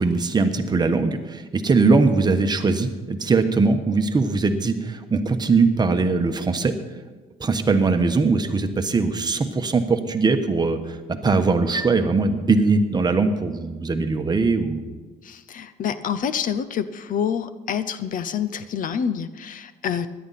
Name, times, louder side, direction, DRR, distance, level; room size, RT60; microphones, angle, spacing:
voice 1, 0.0-6.7 7.4-11.0 11.2-14.8, right 3 dB, 25° right, 7 dB, 1.2 m, -21 dB
voice 2, 15.2-20.1, left 8 dB, 50° left, 14 dB, 0.7 m, -27 dB
17.0 x 11.5 x 4.2 m, 1.3 s
cardioid pair, 110°, 17 cm